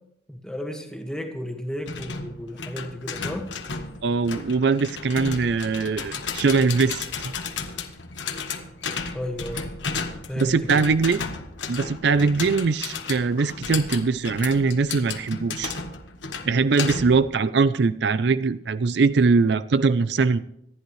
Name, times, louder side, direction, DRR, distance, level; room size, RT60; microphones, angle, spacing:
voice 1, 0.3-3.5 9.1-9.7 10.3-10.8, equal, 5° left, 3 dB, 1.7 m, -33 dB
sound 1, 1.9-17.3, left 5 dB, 75° left, 1.3 m, -34 dB
voice 2, 4.0-7.1 10.4-11.2 11.7-15.7 16.4-20.4, right 4 dB, 60° right, 15 dB, 0.5 m, -21 dB
26.0 x 10.5 x 3.2 m, 0.76 s
head